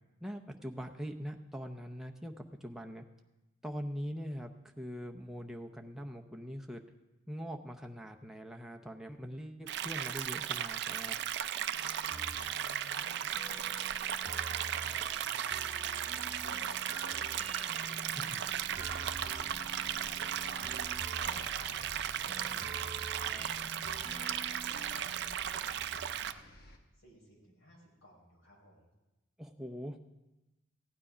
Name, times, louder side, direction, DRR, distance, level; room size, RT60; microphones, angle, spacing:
voice 1, 0.2-3.0 3.6-6.8 7.3-11.2 18.2-18.4 29.4-30.0, equal, ahead, 3 dB, 0.7 m, -42 dB
sound 1, 9.7-26.3, right 10 dB, 55° right, 0.4 m, -36 dB
voice 2, 11.7-14.0 14.3-15.3 15.9-22.1 22.4-28.9, equal, 80° left, -1 dB, 4.6 m, -56 dB
sound 2, 12.1-25.3, right 2 dB, 30° right, 2.1 m, -47 dB
sound 3, 18.5-26.8, equal, 45° left, 1.2 m, -54 dB
15.5 x 9.6 x 5.0 m, 1.0 s
head